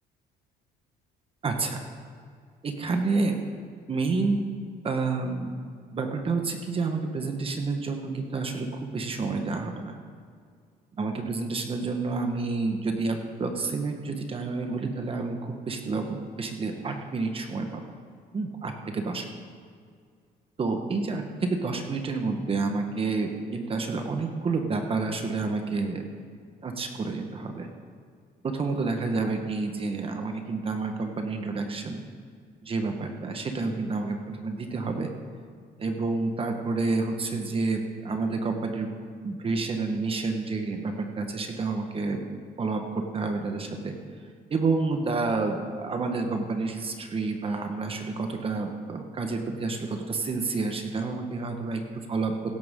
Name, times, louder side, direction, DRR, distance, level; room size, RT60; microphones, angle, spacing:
voice 1, 1.4-1.8 2.6-3.3 3.9-4.4 4.8-5.6 5.9-10.0 11.0-17.8 18.3-19.4 20.6-26.0 26.6-27.7 28.4-32.1 32.6-35.1 35.8-38.9 39.2-42.2 42.6-43.9 44.5-52.3, right 3 dB, 35° right, 4 dB, 1.3 m, -29 dB
16.5 x 12.0 x 3.8 m, 2.1 s
cardioid pair, 110°, 17 cm